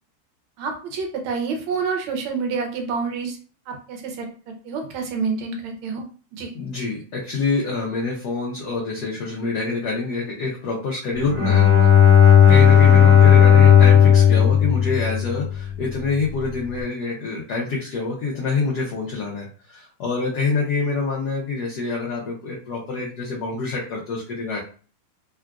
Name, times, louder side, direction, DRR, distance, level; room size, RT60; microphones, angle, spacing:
voice 1, 0.6-3.4 3.7-4.3 4.6-6.0 6.3-6.5, right 5 dB, 75° right, 3 dB, 1.5 m, -28 dB
voice 2, 6.5-11.9 12.5-24.6, left 4 dB, 70° left, -4 dB, 1.0 m, -26 dB
Bowed string instrument, 11.3-15.8, left 8 dB, 50° right, 1.2 m, -13 dB
3.7 x 2.4 x 2.3 m, 0.40 s
omnidirectional pair, 2.4 m